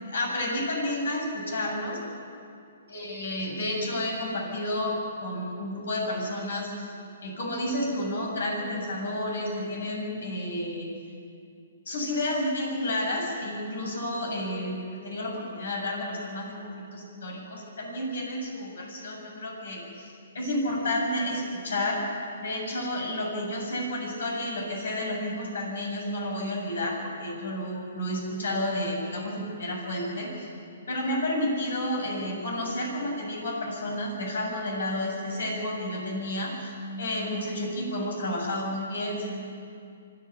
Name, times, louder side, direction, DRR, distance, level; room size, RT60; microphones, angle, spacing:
voice 1, 0.0-2.0 2.9-6.9 7.2-10.9 11.9-22.0 22.4-30.5 30.9-36.7 37.0-39.4, left 1 dB, 75° left, 0 dB, 7.5 m, -31 dB
25.5 x 11.5 x 9.6 m, 2.4 s
hypercardioid pair, 135°, 0 cm